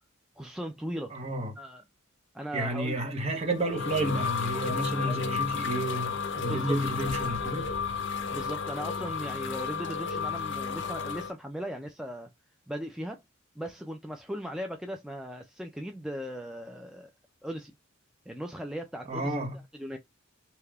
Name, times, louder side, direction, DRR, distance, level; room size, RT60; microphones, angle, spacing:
voice 1, 0.4-1.1 1.6-1.8 2.3-3.0 5.0-5.2 6.5-6.8 8.3-12.3 12.7-13.2 13.6-17.1 17.4-17.7 18.3-19.4 19.8-20.0, equal, 5° right, 0.3 m, -38 dB
voice 2, 1.1-1.5 2.5-7.7 19.1-19.6, right 1 dB, 30° right, 0.9 m, -31 dB
sound 1, 3.3-11.3, left 5 dB, 60° left, 0.7 m, -32 dB
3.3 x 2.8 x 2.3 m
head